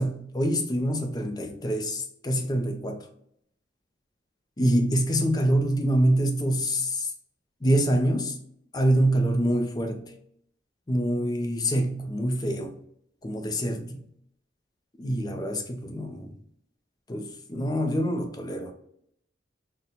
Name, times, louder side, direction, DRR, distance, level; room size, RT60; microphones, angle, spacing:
voice 1, 0.0-3.1 4.6-6.7 7.6-8.4 8.7-10.1 10.9-12.8 13.2-14.0 15.0-16.4 17.1-18.7, right 1 dB, 20° left, 0.4 m, -25 dB
3.9 x 2.1 x 2.8 m
head